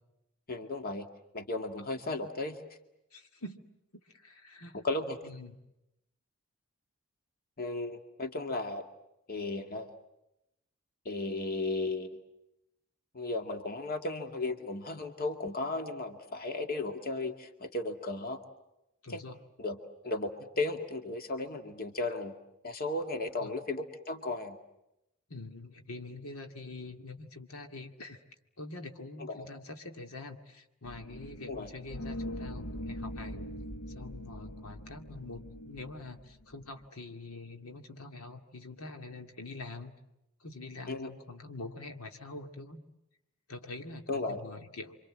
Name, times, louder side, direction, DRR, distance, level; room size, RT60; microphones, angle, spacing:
voice 1, 0.5-1.1 1.3-2.6 4.7-5.2 7.6-8.8 9.3-9.9 11.1-12.2 13.1-18.4 19.1-19.2 19.6-19.8 20.0-22.3 22.6-24.6 29.2-29.5 31.5-31.7 40.9-41.1 44.1-44.4, left 2 dB, 45° left, 6 dB, 2.1 m, -35 dB
voice 2, 3.1-3.6 3.9-4.8 5.2-5.6 19.0-19.4 23.4-23.5 25.3-28.2 28.6-33.5 33.9-39.9 40.4-42.8 43.5-45.0, left 2 dB, 85° left, 5 dB, 2.3 m, -45 dB
sound 1, 30.8-36.8, equal, 60° left, 1.1 m, -42 dB
29.5 x 25.5 x 7.6 m, 0.89 s
head